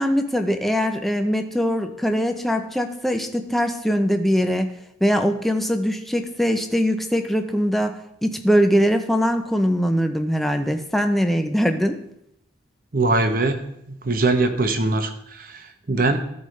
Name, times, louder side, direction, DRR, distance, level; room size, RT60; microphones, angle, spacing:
voice 1, 0.0-4.7 5.0-12.0, equal, ahead, 6 dB, 0.5 m, -22 dB
voice 2, 12.9-13.6 13.9-15.1 15.4-15.6 15.9-16.2, right 2 dB, 50° right, 7 dB, 0.8 m, -21 dB
14.5 x 5.3 x 3.2 m, 0.79 s
head